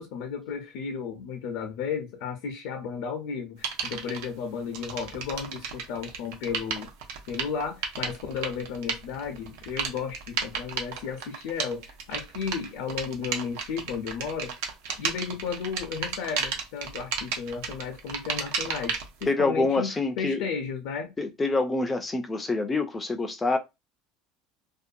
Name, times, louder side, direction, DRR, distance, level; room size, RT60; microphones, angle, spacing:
voice 1, 0.0-6.9 7.3-14.6 15.0-21.1, left 6 dB, 75° left, 0.5 m, -34 dB
sound 1, 3.6-4.3 4.7-19.2, right 6 dB, 80° right, 0.6 m, -33 dB
voice 2, 19.3-20.4 21.2-23.6, left 3 dB, 15° left, 0.3 m, -26 dB
2.5 x 2.2 x 2.5 m
cardioid pair, 145°, 0 cm